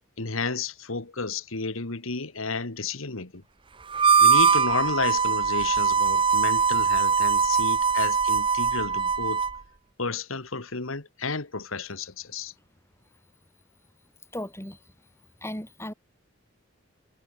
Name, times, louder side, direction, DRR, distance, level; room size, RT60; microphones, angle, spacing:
voice 1, 0.2-3.4 4.2-9.4 10.0-12.5, left 4 dB, 90° left, 2.0 m, -32 dB
Harmonica, 3.9-9.6, right 6 dB, 25° right, 0.8 m, -22 dB
voice 2, 14.3-15.1 15.4-15.9, left 1 dB, 10° left, 7.8 m, -37 dB
head